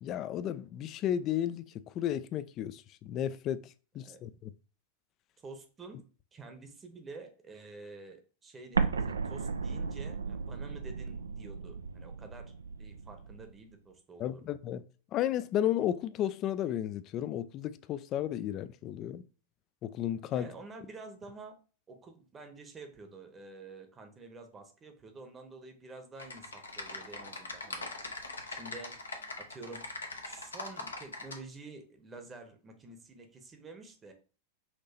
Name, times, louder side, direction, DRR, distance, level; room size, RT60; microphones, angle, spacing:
voice 1, 0.0-1.6 1.9-4.5 14.2-14.8 15.1-19.2 19.8-20.5, left 11 dB, 35° left, 0.3 m, -33 dB
voice 2, 5.4-6.0 6.3-12.5 12.8-14.5 20.3-21.5 21.9-27.9 28.5-28.9 29.4-29.8 30.2-34.1, right 3 dB, 20° right, 0.9 m, -49 dB
Explosion, 8.7-13.5, right 5 dB, 75° right, 0.3 m, -35 dB
Typing, 26.2-31.4, left 2 dB, 75° left, 0.8 m, -41 dB
5.9 x 2.6 x 2.8 m
figure-of-eight pair, 90°, 0 cm